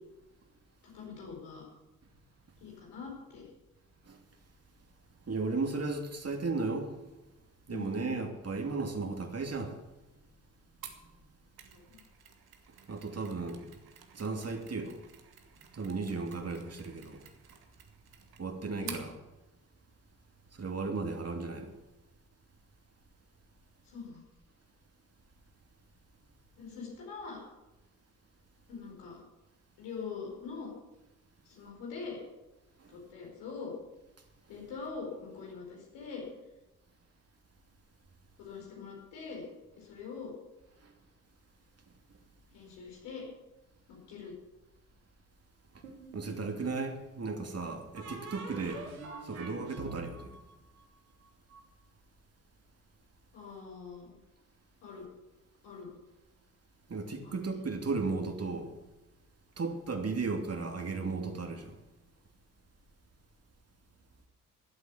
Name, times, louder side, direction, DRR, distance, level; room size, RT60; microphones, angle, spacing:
voice 1, 0.8-1.6 2.6-3.4 7.7-8.1 11.7-12.0 18.8-19.0 23.8-24.2 26.6-27.4 28.7-29.2 29.8-30.7 31.4-32.2 32.9-33.7 34.5-36.3 38.4-39.4 39.8-40.3 42.5-43.3 43.9-44.3 53.3-54.2 54.8-55.0 55.6-55.9 57.2-57.6, left 5 dB, 75° left, 5.0 m, -43 dB
voice 2, 5.3-6.9 7.7-9.8 12.9-13.7 14.1-15.0 15.7-17.2 18.4-19.1 20.5-21.7 32.8-32.9 40.8-40.9 46.1-48.9 49.2-50.3 56.9-58.7 59.6-61.8, right 3 dB, 35° right, 2.7 m, -35 dB
Mechanisms, 10.8-19.1, right 8 dB, 60° right, 2.0 m, -51 dB
sound 1, 45.8-46.7 48.0-51.6, right 4 dB, 90° right, 1.7 m, -45 dB
14.0 x 8.1 x 8.4 m
hypercardioid pair, 45°, 41 cm